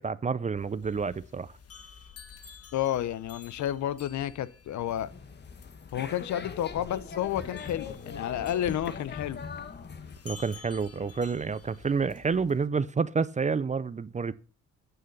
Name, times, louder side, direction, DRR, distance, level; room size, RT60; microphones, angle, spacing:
voice 1, 0.0-1.5 10.2-14.3, right 5 dB, 25° right, 0.5 m, -29 dB
sound 1, 0.5-12.7, left 6 dB, 50° left, 1.7 m, -51 dB
voice 2, 2.7-5.1 5.9-9.4, left 11 dB, 70° left, 0.8 m, -31 dB
sound 2, 4.8-10.2, left 5 dB, 35° left, 1.3 m, -41 dB
9.2 x 6.7 x 5.4 m
cardioid pair, 90°, 30 cm